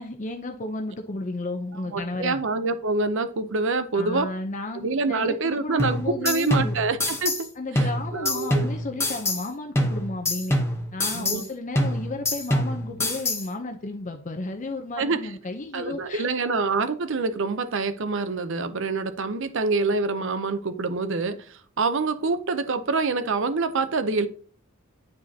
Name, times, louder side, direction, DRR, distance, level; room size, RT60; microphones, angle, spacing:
voice 1, 0.0-2.4 3.9-6.8 7.6-10.6 10.9-16.3, left 2 dB, 40° left, 5 dB, 0.7 m, -33 dB
voice 2, 1.9-4.3 4.8-7.3 7.8-8.7 11.1-11.4 15.0-15.2 15.7-24.3, right 4 dB, 65° right, 11 dB, 0.7 m, -26 dB
sound 1, 5.8-7.5 7.8-9.5 9.8-11.5 11.8-13.5, left 1 dB, 15° left, 0.9 m, -26 dB
9.2 x 4.9 x 2.8 m, 0.44 s
head